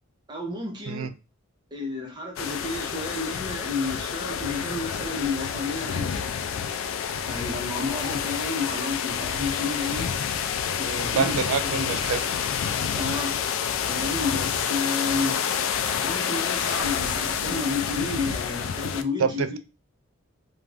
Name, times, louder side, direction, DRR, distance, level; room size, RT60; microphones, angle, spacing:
voice 1, 0.3-1.1 1.7-6.2 7.3-10.1 10.8-11.9 12.9-13.4 13.9-15.4 16.0-19.6, left 3 dB, 20° right, 0.8 m, -31 dB
sound 1, 2.4-19.0, left 7 dB, 70° left, 0.3 m, -28 dB
voice 2, 11.0-12.4 19.2-19.6, right 6 dB, 85° right, 0.4 m, -27 dB
2.5 x 2.4 x 3.3 m
head